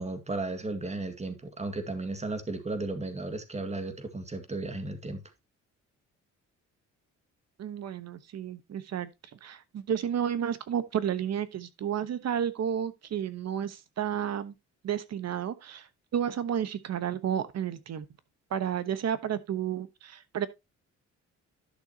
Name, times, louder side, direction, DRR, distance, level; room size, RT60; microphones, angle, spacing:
voice 1, 0.0-5.2, right 2 dB, 20° right, 1.9 m, -34 dB
voice 2, 7.6-9.1 9.4-14.5 14.8-15.9 16.1-18.1 18.5-20.5, right 9 dB, 60° right, 1.1 m, -31 dB
11.5 x 6.4 x 2.9 m
cardioid pair, 90°, 30 cm